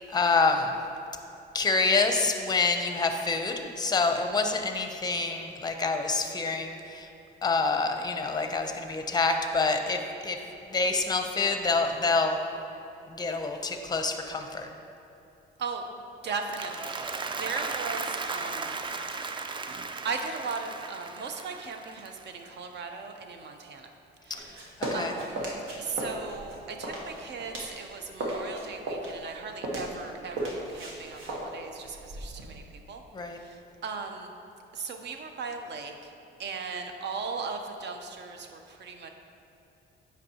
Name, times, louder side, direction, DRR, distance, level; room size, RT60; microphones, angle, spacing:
voice 1, 0.1-0.8 1.5-7.1 7.4-10.4 10.7-12.4 13.1-14.7 24.9-25.1 33.1-33.4, left 3 dB, 20° left, 5 dB, 0.6 m, -27 dB
voice 2, 16.2-18.8 20.0-23.9 24.2-25.5 25.8-33.0 33.4-34.3 34.7-36.1 36.4-39.1, right 4 dB, 60° right, 5 dB, 0.7 m, -37 dB
Applause, 16.3-22.6, right 4 dB, 25° right, 0.3 m, -36 dB
sound 1, 24.3-27.9 28.1-32.6, right 1 dB, 90° right, 1.1 m, -36 dB
8.2 x 5.3 x 2.8 m, 3.0 s
cardioid pair, 90°, 20 cm